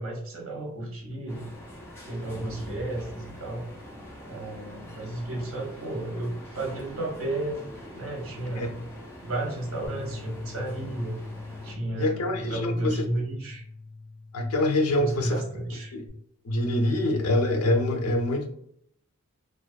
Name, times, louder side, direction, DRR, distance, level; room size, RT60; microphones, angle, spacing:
voice 1, 0.0-1.5 2.0-3.7 4.3-7.6 7.9-8.8 9.2-11.2 11.6-13.6 14.9-15.9, right 1 dB, 65° right, -1 dB, 0.7 m, -33 dB
sound 1, 1.3-11.7, equal, 10° left, 0.4 m, -44 dB
Bass guitar, 9.8-16.1, left 3 dB, 40° left, 0.9 m, -42 dB
voice 2, 12.0-13.0 14.3-15.4 15.9-16.0 16.4-18.5, left 1 dB, 85° left, 5 dB, 0.5 m, -25 dB
2.4 x 2.2 x 2.3 m, 0.69 s
head